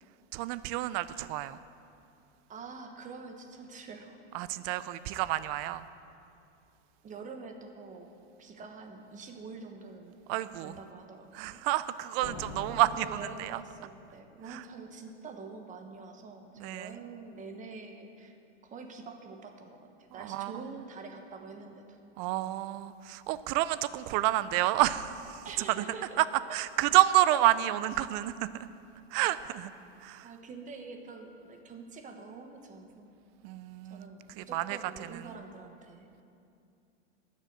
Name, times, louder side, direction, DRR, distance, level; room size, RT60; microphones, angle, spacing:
voice 1, 0.3-1.6 4.3-5.9 10.3-10.8 11.3-13.6 14.5-14.6 16.6-17.0 20.2-20.7 22.2-25.8 26.2-26.3 26.5-28.7 29.1-29.7 30.0-30.3 33.4-34.1 34.4-34.8 35.1-35.4, right 15 dB, 40° right, 15 dB, 0.4 m, -29 dB
voice 2, 2.5-4.2 7.0-8.1 8.4-10.2 10.6-11.6 12.7-18.4 18.6-22.0 25.4-26.1 30.2-33.2 33.9-36.1, right 4 dB, 20° right, 4 dB, 1.1 m, -46 dB
sound 1, 12.2-14.0, left 1 dB, 45° left, 3.2 m, -44 dB
12.0 x 6.5 x 7.9 m, 2.5 s
supercardioid pair, 130°, 35 cm